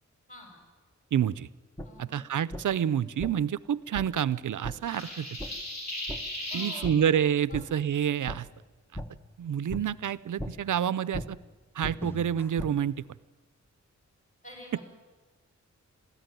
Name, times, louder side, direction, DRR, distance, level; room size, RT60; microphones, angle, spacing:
voice 1, 0.3-0.6 1.8-2.3 6.5-7.1 7.4-7.7 14.4-14.8, equal, 25° left, 1 dB, 6.7 m, -48 dB
voice 2, 1.1-1.5 2.0-5.3 6.5-8.5 9.4-11.4 11.7-13.0 14.7-14.8, right 9 dB, 80° right, 18 dB, 0.6 m, -28 dB
sound 1, 1.8-1.9 2.5-2.6 3.2-3.3 3.9-4.1 4.6-4.8 5.4-5.5 6.1-6.2 6.8-6.9 7.5-7.6 8.3-8.4 8.9-9.1 9.7-9.8 10.4-10.5 11.1-11.3 11.8-12.7, equal, 5° left, 1.1 m, -36 dB
sound 2, 4.9-6.8, left 1 dB, 60° left, 7.9 m, -36 dB
22.0 x 14.5 x 9.3 m, 1.3 s
wide cardioid pair, 170°, 30 cm